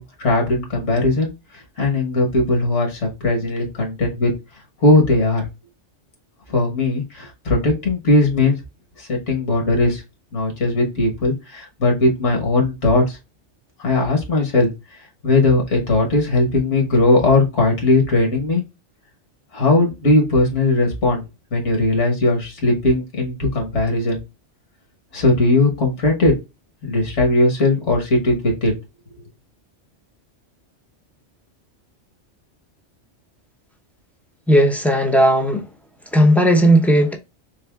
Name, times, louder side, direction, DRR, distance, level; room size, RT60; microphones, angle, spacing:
voice 1, 0.0-4.3 4.8-5.5 6.5-8.6 9.0-10.0 10.3-13.2 13.8-14.7 15.2-18.6 19.5-21.2 21.5-24.2 25.1-26.3 26.9-28.7, left 2 dB, 75° left, 1.6 m, -18 dB
voice 2, 34.5-35.6 36.1-37.1, equal, ahead, 0.5 m, -15 dB
4.1 x 3.7 x 2.3 m
omnidirectional pair, 1.2 m